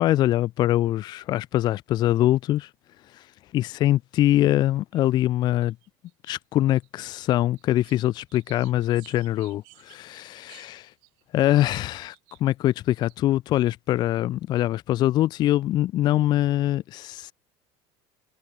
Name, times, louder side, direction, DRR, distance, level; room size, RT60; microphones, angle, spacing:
voice 1, 0.0-2.7 3.1-3.3 3.5-5.7 6.3-10.9 11.3-12.2 12.4-17.3, left 14 dB, 40° left, 0.5 m, -23 dB
sound 1, 3.9-4.0 4.9-5.2 5.6-6.3 6.7-12.5 13.1-13.2, right 40 dB or more, 75° right, 4.6 m, -56 dB
cardioid pair, 155°, 12 cm